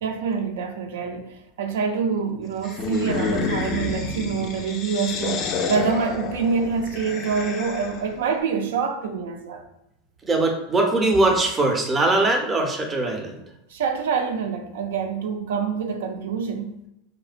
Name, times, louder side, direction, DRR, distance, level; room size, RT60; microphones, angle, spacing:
voice 1, 0.0-9.6 13.7-16.7, right 5 dB, 85° right, 0.3 m, -26 dB
sound 1, 2.6-8.1, left 4 dB, 40° left, 0.3 m, -29 dB
voice 2, 10.2-13.4, right 2 dB, 20° right, 0.5 m, -21 dB
2.7 x 2.1 x 2.4 m
supercardioid pair, 130°, 0 cm